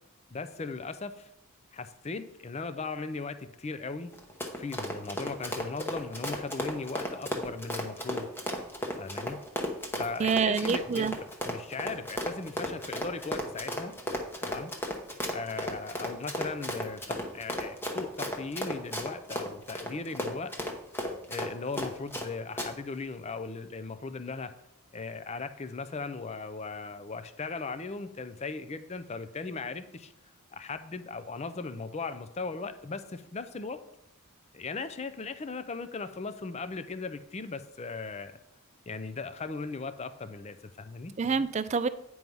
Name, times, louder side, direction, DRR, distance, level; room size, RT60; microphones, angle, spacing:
voice 1, 0.3-1.3 1.7-4.1 4.5-8.3 9.0-9.4 9.9-11.1 11.4-13.9 14.4-14.7 15.3-20.5 21.3-24.5 24.9-30.1 30.5-33.8 34.5-38.4 38.9-41.1, left 4 dB, 30° left, 11 dB, 0.5 m, -38 dB
Run, 4.1-22.3 22.6-22.7, equal, 10° left, 1.0 m, -34 dB
voice 2, 10.2-11.1 41.2-41.9, right 5 dB, 30° right, 13 dB, 0.4 m, -27 dB
9.3 x 4.7 x 5.4 m, 0.81 s
head